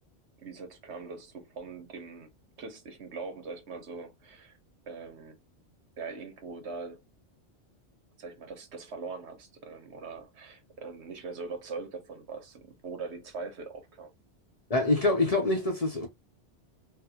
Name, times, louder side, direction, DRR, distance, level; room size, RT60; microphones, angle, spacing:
voice 1, 0.4-2.3 2.6-4.6 4.9-5.4 6.0-7.0 8.2-14.1, right 4 dB, 75° right, 1.1 m, -41 dB
voice 2, 14.7-16.1, left 2 dB, 40° left, 0.7 m, -25 dB
3.8 x 2.1 x 2.8 m
omnidirectional pair, 1.2 m